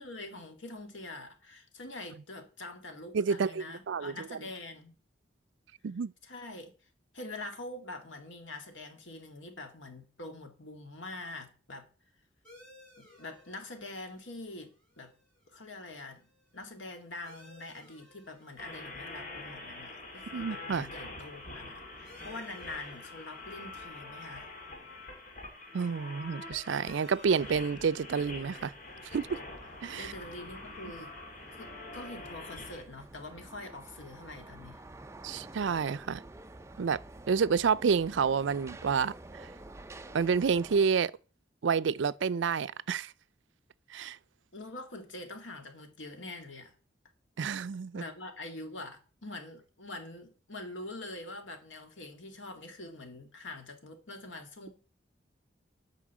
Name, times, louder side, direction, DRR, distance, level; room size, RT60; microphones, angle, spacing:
voice 1, 0.0-4.9 6.2-6.7 7.1-11.9 13.0-15.1 15.5-16.3 16.5-24.5 30.0-31.1 31.5-34.8 44.5-46.7 47.9-54.9, left 2 dB, 85° left, 2.1 m, -44 dB
voice 2, 3.1-4.4 5.8-6.1 20.3-20.9 25.7-28.7 29.0-29.4 29.8-30.1 35.2-36.2 36.8-37.0 37.3-39.5 40.1-41.1 41.6-43.1 43.9-44.2 47.4-48.0, right 6 dB, 75° right, 0.4 m, -29 dB
sound 1, 12.4-31.6, left 1 dB, 5° left, 5.9 m, -62 dB
sound 2, 18.6-32.8, left 2 dB, 45° left, 2.5 m, -45 dB
sound 3, 27.5-40.9, right 2 dB, 15° right, 0.5 m, -50 dB
8.6 x 5.5 x 7.4 m
head